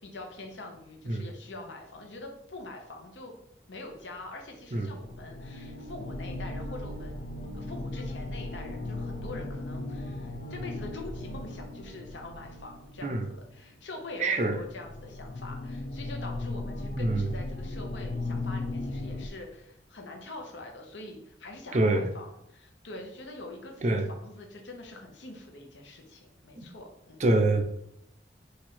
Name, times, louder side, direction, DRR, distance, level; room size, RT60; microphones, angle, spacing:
voice 1, 0.0-3.3 3.7-7.2 7.5-27.2, left 2 dB, 90° left, 2 dB, 1.0 m, -44 dB
sound 1, 3.8-3.9 4.7-13.7 14.5-19.3, left 2 dB, 45° left, 0.5 m, -37 dB
voice 2, 14.2-14.6 17.0-17.3 21.7-22.0 23.8-24.1 26.6-26.7 27.2-27.6, right 2 dB, 40° right, 6 dB, 0.5 m, -25 dB
4.4 x 2.6 x 4.2 m, 0.76 s
head